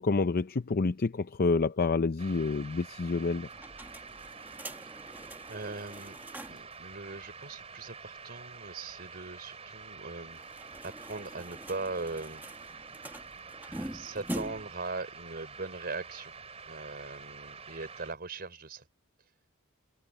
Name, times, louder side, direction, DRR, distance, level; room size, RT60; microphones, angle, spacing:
voice 1, 0.0-3.5, left 3 dB, 45° left, 0.5 m, -28 dB
sound 1, 2.2-18.1, right 5 dB, 30° right, 3.3 m, -48 dB
sound 2, 3.5-6.8 7.1-7.2 7.4-7.5 10.3-14.8, right 1 dB, 10° right, 1.4 m, -44 dB
voice 2, 5.5-6.2 6.5-12.4 13.7-16.3 16.7-18.9, right 3 dB, 45° right, 3.8 m, -40 dB
open air
head